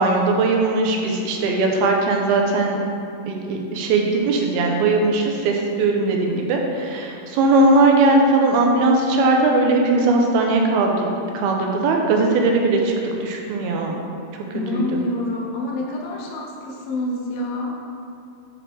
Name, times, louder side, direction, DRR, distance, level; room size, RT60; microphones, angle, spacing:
voice 1, 0.0-2.8 3.3-11.1 11.3-12.9 13.2-14.0 14.7-15.0, right 2 dB, 85° right, 1 dB, 2.6 m, -19 dB
voice 2, 14.5-17.8, left 2 dB, 80° left, -2 dB, 1.5 m, -27 dB
7.4 x 5.0 x 4.7 m, 2.5 s
omnidirectional pair, 4.5 m